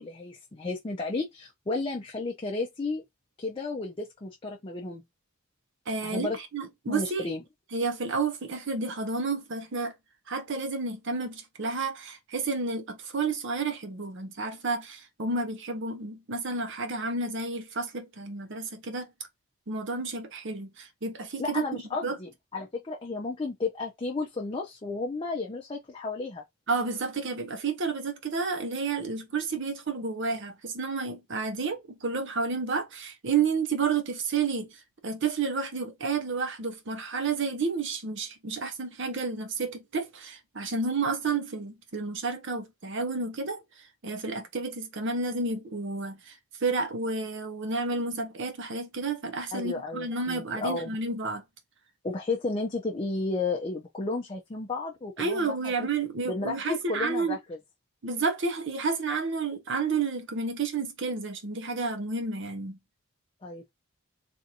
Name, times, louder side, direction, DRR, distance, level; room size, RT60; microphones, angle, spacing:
voice 1, 0.0-3.0 3.4-5.0 6.0-6.4 6.9-7.4 21.4-26.4 49.5-50.9 52.0-55.9 56.3-57.6 63.4-63.7, left 3 dB, 25° left, 0.4 m, -33 dB
voice 2, 5.9-7.3 7.7-9.9 10.3-19.1 19.7-22.2 26.7-34.7 35.0-43.6 44.0-46.4 46.6-51.4 55.2-57.4 58.0-62.8, right 4 dB, 55° right, 0.7 m, -31 dB
3.4 x 2.6 x 2.8 m
head